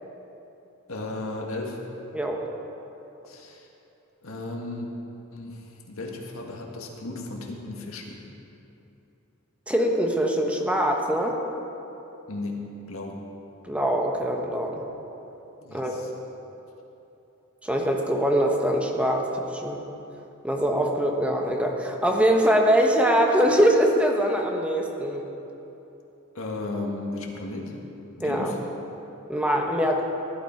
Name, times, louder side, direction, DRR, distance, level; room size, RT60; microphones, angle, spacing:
voice 1, 0.9-1.8 3.2-3.7 4.2-4.9 5.3-8.3 12.3-13.2 15.6-16.1 26.3-27.8 28.2-28.6, left 2 dB, 90° left, 0 dB, 1.8 m, -35 dB
voice 2, 9.7-11.3 13.7-14.8 15.7-16.0 17.6-19.8 20.4-25.2 28.2-28.5 29.3-30.0, equal, 5° right, 1 dB, 1.1 m, -23 dB
15.5 x 11.5 x 4.6 m, 2.9 s
head